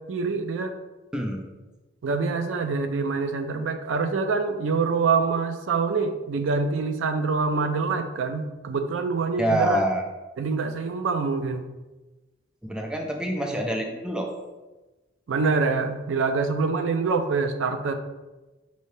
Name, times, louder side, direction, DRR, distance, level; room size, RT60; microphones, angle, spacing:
voice 1, 0.1-0.7 2.0-9.8 10.4-11.6 15.3-17.9, right 4 dB, 75° right, 7 dB, 0.4 m, -25 dB
voice 2, 1.1-1.4 9.4-10.0 12.6-14.3, right 1 dB, 5° right, 2 dB, 0.3 m, -26 dB
5.4 x 2.7 x 3.2 m, 1.1 s
head